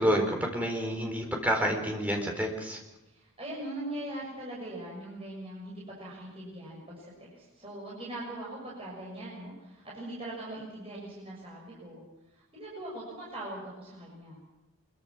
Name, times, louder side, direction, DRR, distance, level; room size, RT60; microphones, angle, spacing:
voice 1, 0.0-2.8, equal, 5° right, 2 dB, 4.4 m, -28 dB
voice 2, 3.0-12.0 12.3-14.5, right 1 dB, 25° right, -5 dB, 6.9 m, -41 dB
25.5 x 23.5 x 6.2 m, 1.0 s
head